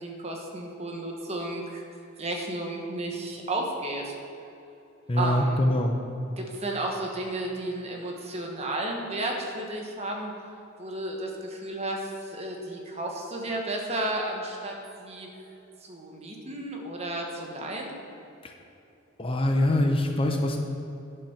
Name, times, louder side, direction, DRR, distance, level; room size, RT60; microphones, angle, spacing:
voice 1, 0.0-1.8 2.2-4.1 5.2-5.7 6.4-10.3 10.8-15.3 15.9-17.9, right 1 dB, 30° right, 0 dB, 1.2 m, -33 dB
voice 2, 5.1-5.9 18.4-18.5 19.2-20.6, left 1 dB, 25° left, 3 dB, 0.6 m, -24 dB
10.0 x 5.6 x 5.8 m, 2.8 s
head